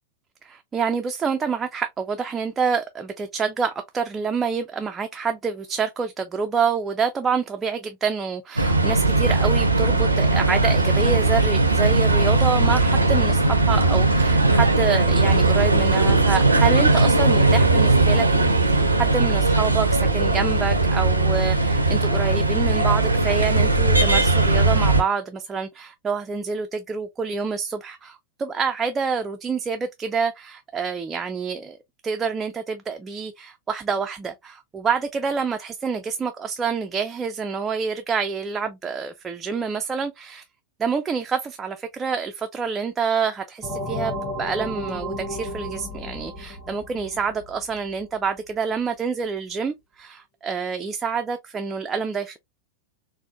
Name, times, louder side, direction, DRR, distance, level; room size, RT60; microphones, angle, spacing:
voice 1, 0.4-18.5 19.0-31.8 32.0-40.4 40.8-52.4, right 5 dB, 20° right, 0.3 m, -27 dB
sound 1, 8.6-25.0, right 2 dB, 85° right, 0.5 m, -19 dB
sound 2, 43.6-48.0, equal, 25° left, 1.8 m, -33 dB
4.2 x 2.0 x 2.3 m
figure-of-eight pair, 90°, 0 cm